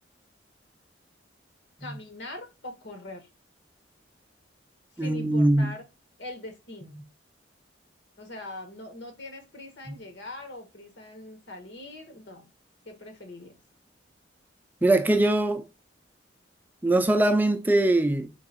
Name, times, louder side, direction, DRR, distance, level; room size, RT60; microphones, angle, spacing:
voice 1, 1.8-3.3 5.0-5.8 6.2-7.0 8.2-12.5 12.8-13.6, left 1 dB, 70° left, 1.2 m, -42 dB
voice 2, 5.0-5.7 14.8-15.6 16.8-18.3, right 1 dB, 10° right, 0.3 m, -22 dB
3.9 x 3.4 x 3.8 m
head